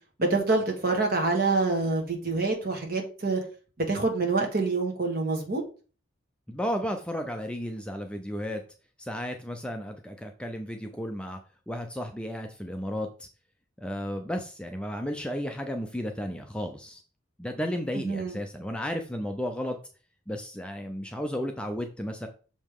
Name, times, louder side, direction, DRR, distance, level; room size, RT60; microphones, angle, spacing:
voice 1, 0.2-3.4 3.8-5.6 17.9-18.4, right 3 dB, 45° right, 2 dB, 1.7 m, -26 dB
voice 2, 6.5-8.6 9.0-11.4 11.7-13.3 13.8-17.0 17.4-19.8 20.3-22.3, equal, 5° left, 4 dB, 0.5 m, -33 dB
6.5 x 5.0 x 3.6 m, 0.37 s
head